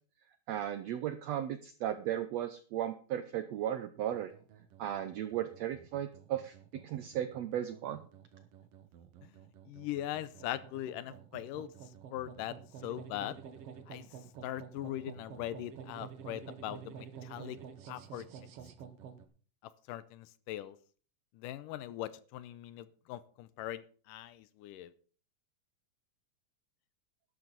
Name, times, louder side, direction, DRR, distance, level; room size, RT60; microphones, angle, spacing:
voice 1, 0.5-4.3 4.8-8.0, right 11 dB, 80° right, 10 dB, 1.5 m, -36 dB
sound 1, 4.0-19.3, right 8 dB, 65° right, 1.6 m, -51 dB
voice 2, 9.7-11.7 12.1-12.6 12.8-13.3 13.9-14.0 14.4-17.6 17.9-18.3 19.9-20.8 21.4-23.8 24.1-24.9, left 13 dB, 80° left, 15 dB, 2.2 m, -40 dB
12.0 x 11.5 x 4.0 m, 0.41 s
omnidirectional pair, 3.9 m